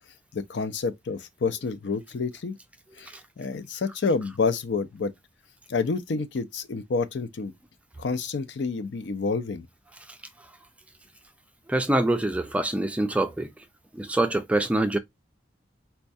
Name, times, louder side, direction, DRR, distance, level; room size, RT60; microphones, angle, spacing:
voice 1, 0.3-2.6 3.0-3.1 3.4-5.1 5.7-7.5 8.0-9.7, left 4 dB, 65° left, 0.5 m, -28 dB
voice 2, 11.7-13.5 13.9-15.0, right 1 dB, 5° right, 0.3 m, -25 dB
4.4 x 2.3 x 2.5 m
head